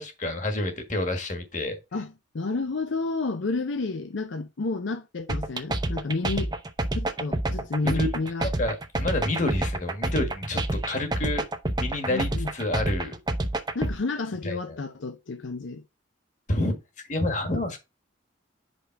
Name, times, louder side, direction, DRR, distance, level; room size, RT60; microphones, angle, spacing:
voice 1, 0.0-1.8 7.8-8.1 8.4-10.6 10.8-11.4 11.8-13.1 14.4-14.6 16.5-16.8 17.1-17.8, left 1 dB, 40° left, 1.5 m, -28 dB
voice 2, 1.9-6.5 6.9-8.5 12.1-12.5 13.7-15.8, left 3 dB, 75° left, 0.6 m, -30 dB
sound 1, 5.3-14.0, right 1 dB, 20° right, 0.6 m, -28 dB
5.3 x 4.8 x 4.5 m
head